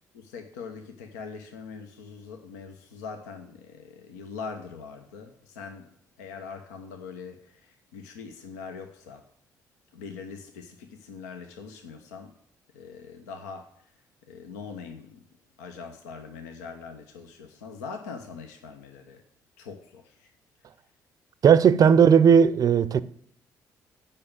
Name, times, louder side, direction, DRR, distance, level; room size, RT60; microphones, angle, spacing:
voice 1, 0.1-5.9 6.2-9.2 9.9-12.3 12.7-13.9 14.2-15.3 15.6-19.2 19.6-20.3, left 5 dB, 75° left, 0.7 m, -42 dB
voice 2, 21.4-23.0, right 7 dB, 40° right, 0.5 m, -16 dB
8.5 x 5.4 x 7.1 m
figure-of-eight pair, 45°, 9 cm